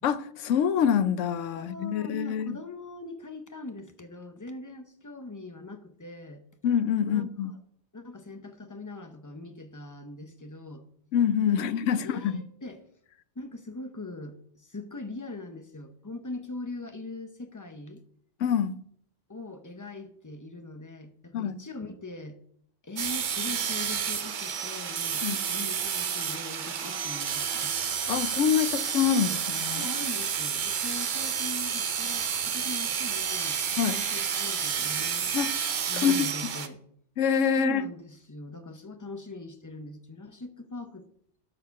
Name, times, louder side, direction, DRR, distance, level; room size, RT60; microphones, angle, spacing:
voice 1, 0.0-2.6 6.6-7.5 11.1-12.4 18.4-18.7 21.3-21.5 25.2-25.4 28.1-29.9 33.8-34.0 35.3-35.5 35.9-36.5 37.2-37.8, left 8 dB, 85° left, 1.0 m, -26 dB
voice 2, 1.6-6.4 7.0-7.6 7.9-10.8 11.4-12.8 13.3-18.0 19.3-22.4 22.8-27.7 29.7-33.6 33.9-35.3 35.9-36.8 37.6-41.1, left 2 dB, 20° left, 0.8 m, -41 dB
sound 1, 23.0-36.7, right 7 dB, 50° right, 0.7 m, -30 dB
12.5 x 4.8 x 5.8 m
omnidirectional pair, 1.2 m